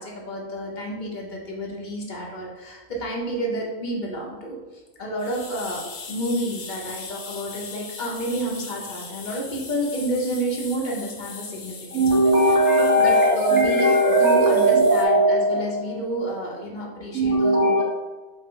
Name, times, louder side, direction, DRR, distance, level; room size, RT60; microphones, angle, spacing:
voice 1, 0.0-4.6 5.0-12.1 13.0-13.9 14.2-17.8, right 1 dB, 45° left, -2 dB, 0.6 m, -30 dB
sound 1, 5.2-15.1, left 5 dB, 85° left, 1.3 m, -39 dB
voice 2, 11.9-15.8 17.1-17.8, right 1 dB, 20° right, -2 dB, 0.6 m, -18 dB
5.1 x 2.5 x 3.7 m, 1.2 s
omnidirectional pair, 1.7 m